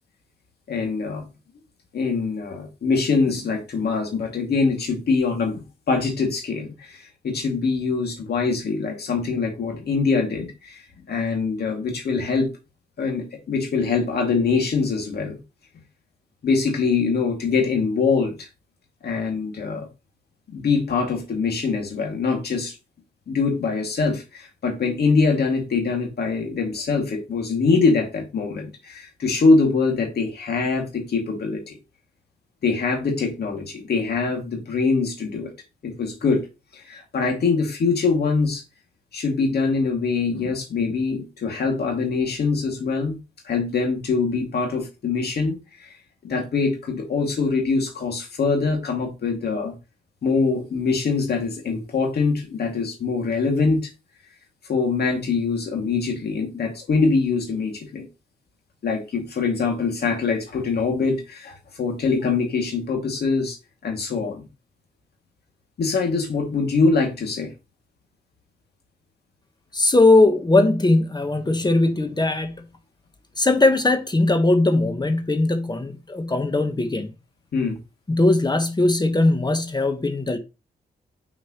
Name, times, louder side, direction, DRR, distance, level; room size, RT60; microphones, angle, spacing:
voice 1, 0.7-1.2 1.9-10.8 11.1-12.5 13.0-15.4 16.4-18.5 19.0-19.9 20.5-22.8 23.3-31.8 32.6-35.5 35.8-36.4 36.7-38.6 39.1-43.2 43.4-45.9 46.2-49.7 50.2-53.8 54.7-58.1 58.8-63.6 63.8-64.5 65.8-67.5 77.5-77.8, left 4 dB, 70° left, 2.2 m, -23 dB
voice 2, 69.7-72.5 73.4-77.1 78.1-80.4, left 2 dB, 25° left, 1.1 m, -19 dB
6.1 x 5.3 x 3.0 m
cardioid pair, 55°, 17 cm